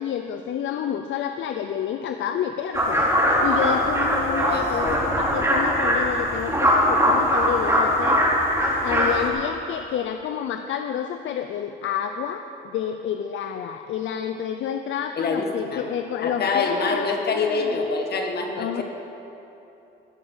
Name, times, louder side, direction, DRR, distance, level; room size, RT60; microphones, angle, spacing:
voice 1, 0.0-3.0 3.4-8.2 8.8-17.8 18.6-18.8, left 9 dB, 75° left, 7 dB, 0.6 m, -29 dB
sound 1, 2.7-9.3, equal, 15° right, 3.2 m, -21 dB
voice 2, 4.3-5.0 15.2-15.9 16.2-18.8, left 4 dB, 55° left, 3 dB, 1.7 m, -25 dB
16.0 x 7.0 x 7.2 m, 3.0 s
cardioid pair, 90°, 20 cm